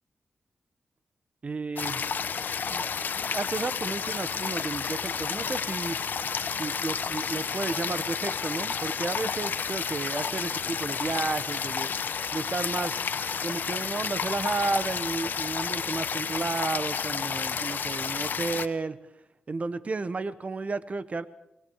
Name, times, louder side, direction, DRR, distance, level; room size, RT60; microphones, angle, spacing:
voice 1, 1.4-2.1 2.7-2.9 3.2-6.0 6.6-11.9 12.3-13.0 13.4-19.0 19.5-21.3, right 3 dB, 45° right, 14 dB, 1.2 m, -32 dB
sound 1, 1.8-18.7, left 6 dB, 70° left, 1.1 m, -31 dB
26.0 x 21.5 x 4.8 m, 0.88 s
cardioid pair, 75°, 3 cm